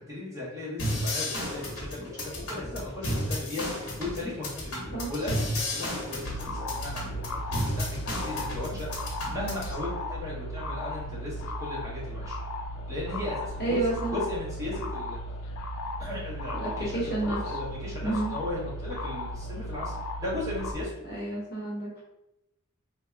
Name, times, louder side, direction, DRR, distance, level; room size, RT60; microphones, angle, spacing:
voice 1, 0.0-12.4 12.9-13.8 14.1-15.2 15.6-20.9, left 2 dB, 15° right, -7 dB, 0.8 m, -37 dB
sound 1, 0.8-9.8, left 1 dB, 75° left, 0.9 m, -33 dB
sound 2, 6.2-20.7, left 1 dB, 90° left, 0.4 m, -36 dB
voice 2, 13.6-14.1 16.6-17.4 18.0-18.3 21.0-22.0, right 2 dB, 50° left, -5 dB, 1.0 m, -30 dB
3.3 x 2.2 x 2.4 m, 0.89 s
head